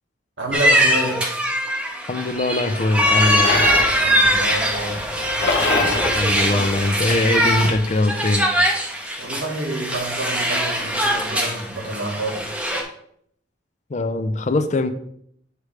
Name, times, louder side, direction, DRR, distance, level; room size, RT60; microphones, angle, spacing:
voice 1, 0.4-1.2 3.9-5.0 9.2-12.7, right 1 dB, 90° right, 0 dB, 1.7 m, -28 dB
sound 1, 0.5-12.8, equal, 5° right, 0.7 m, -21 dB
voice 2, 2.1-3.6 6.1-8.5 13.9-14.9, left 2 dB, 40° left, 9 dB, 0.5 m, -21 dB
sound 2, 3.0-7.8, left 3 dB, 90° left, 0.9 m, -27 dB
8.2 x 3.2 x 4.8 m, 0.69 s
head